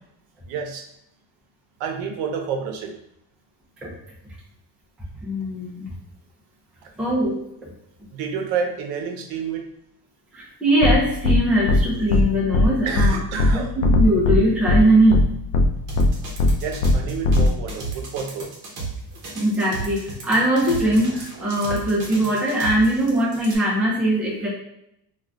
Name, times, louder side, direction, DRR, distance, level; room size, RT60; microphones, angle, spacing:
voice 1, 0.5-0.9 1.8-3.0 6.8-6.9 8.1-9.6 12.9-13.7 16.6-18.5, right 6 dB, 80° right, 4 dB, 0.7 m, -29 dB
voice 2, 5.2-6.0 7.0-7.4 7.6-7.7 10.3-13.2 13.5-15.3 19.3-24.5, right 1 dB, ahead, -5 dB, 0.3 m, -21 dB
sound 1, 10.8-10.9 11.2-11.4 11.7-11.8 12.1-12.2 12.5-12.7 13.0-13.1 13.4-13.5 13.8-14.4 14.7-14.8 15.1-15.2 15.5-15.7 16.0-16.1 16.4-16.5 16.8-16.9 17.2-17.5, left 2 dB, 85° left, 0.6 m, -17 dB
sound 2, 15.9-23.6, right 4 dB, 40° right, 0.8 m, -34 dB
2.5 x 2.3 x 3.2 m, 0.77 s
cardioid pair, 170°, 46 cm